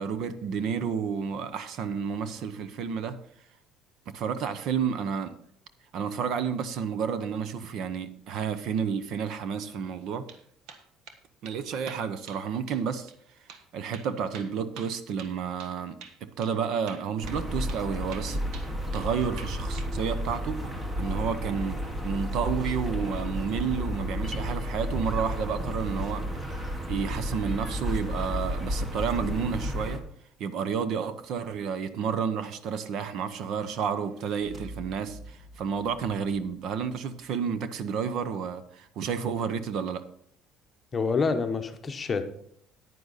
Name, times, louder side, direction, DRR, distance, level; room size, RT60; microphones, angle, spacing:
voice 1, 0.0-3.2 4.1-5.3 5.9-10.3 11.4-13.1 13.7-18.4 18.9-20.6 21.0-26.6 26.9-30.0 30.4-40.0, right 6 dB, 55° right, 0.8 m, -31 dB
sound 1, 10.0-10.4 10.7-11.2 11.4-11.6 11.9-12.4 12.7-12.8 13.1-13.2 13.5-13.6 13.9-15.7 16.0-16.2 16.4-16.5 16.9-17.8 18.1-19.1 19.4-19.9, right 6 dB, 70° right, 1.3 m, -46 dB
sound 2, 17.2-30.0, equal, 15° right, 1.3 m, -32 dB
sound 3, 33.9-37.3, right 1 dB, 30° right, 1.4 m, -47 dB
voice 2, 40.9-42.2, left 4 dB, 25° left, 1.0 m, -27 dB
10.0 x 9.5 x 4.1 m
cardioid pair, 150°, 0 cm